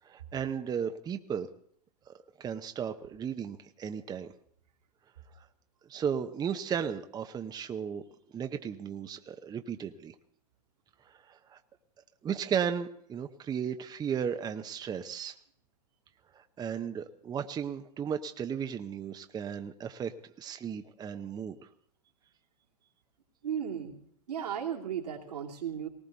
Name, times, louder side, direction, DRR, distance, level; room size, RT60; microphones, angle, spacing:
voice 1, 0.0-1.5 2.1-4.3 5.9-8.0 8.3-10.1 11.3-11.6 12.2-15.4 16.3-20.1 20.4-21.6, right 7 dB, 20° right, 7 dB, 0.8 m, -35 dB
voice 2, 23.4-24.0 24.3-25.9, right 8 dB, 80° right, -1 dB, 2.9 m, -35 dB
19.0 x 18.5 x 4.0 m, 0.62 s
hypercardioid pair, 105°, 20 cm